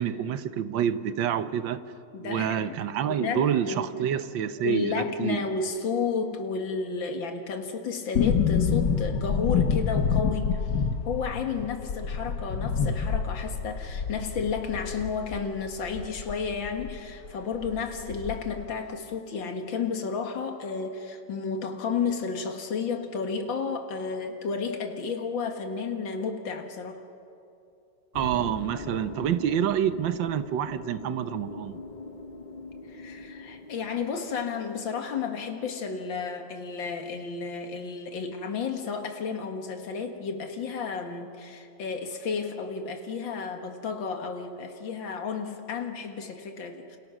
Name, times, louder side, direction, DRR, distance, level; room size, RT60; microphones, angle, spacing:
voice 1, 0.0-1.8 2.2-5.4 28.1-31.8, right 9 dB, 80° right, 12 dB, 1.6 m, -28 dB
voice 2, 2.1-2.8 3.2-4.0 4.6-10.7 11.0-27.0 32.9-47.0, left 5 dB, 90° left, 5 dB, 2.4 m, -32 dB
sound 1, 8.2-17.0 17.2-17.3 17.6-18.6 18.9-19.0, left 6 dB, 65° left, 1.7 m, -27 dB
sound 2, 28.1-35.1, left 3 dB, 35° left, 0.9 m, -41 dB
28.5 x 28.0 x 6.2 m, 2.6 s
omnidirectional pair, 2.0 m